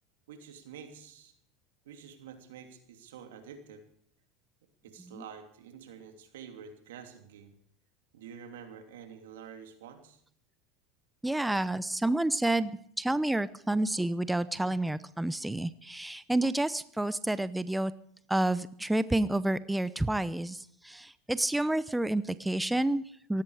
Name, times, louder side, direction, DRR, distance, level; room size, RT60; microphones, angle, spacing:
voice 1, 0.3-1.3 1.8-3.8 4.8-7.5 8.1-10.2, right 7 dB, 80° right, 6 dB, 2.9 m, -48 dB
voice 2, 11.2-17.9 18.3-23.4, right 1 dB, 5° right, 16 dB, 0.7 m, -29 dB
17.0 x 16.0 x 4.9 m, 0.66 s
hypercardioid pair, 90°, 0 cm